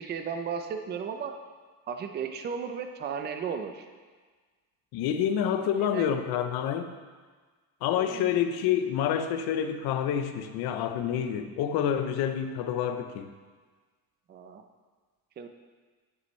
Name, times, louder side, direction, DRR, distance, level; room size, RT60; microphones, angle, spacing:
voice 1, 0.0-1.3 1.9-3.9 5.9-6.1 7.9-8.3 14.3-14.6 15.4-15.5, right 6 dB, 30° right, 6 dB, 0.5 m, -35 dB
voice 2, 4.9-6.9 7.8-13.3, left 9 dB, 80° left, 8 dB, 0.7 m, -28 dB
9.8 x 6.9 x 3.1 m, 1.4 s
cardioid pair, 155°, 37 cm